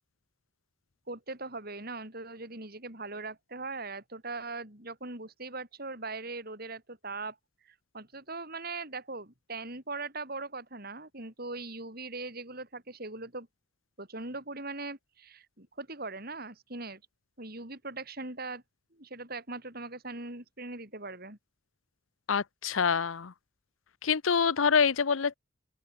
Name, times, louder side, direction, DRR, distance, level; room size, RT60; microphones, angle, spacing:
voice 1, 1.1-7.4 7.9-13.5 14.0-17.0 17.4-18.6 18.9-21.4, right 3 dB, 50° right, 6.1 m, -40 dB
voice 2, 22.3-23.3 24.0-25.3, left 6 dB, 80° left, 0.7 m, -26 dB
open air
head